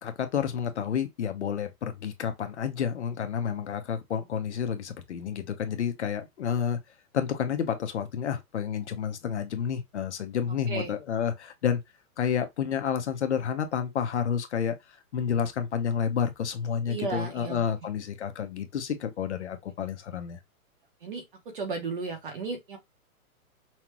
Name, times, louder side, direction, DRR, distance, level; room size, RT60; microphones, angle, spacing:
voice 1, 0.0-6.8 7.1-11.8 12.2-14.8 15.1-20.4, left 8 dB, 50° left, 0.9 m, -30 dB
voice 2, 16.9-17.9 21.0-21.2 21.5-22.8, right 4 dB, 35° right, 0.9 m, -34 dB
5.7 x 2.3 x 2.9 m
hypercardioid pair, 175°, 43 cm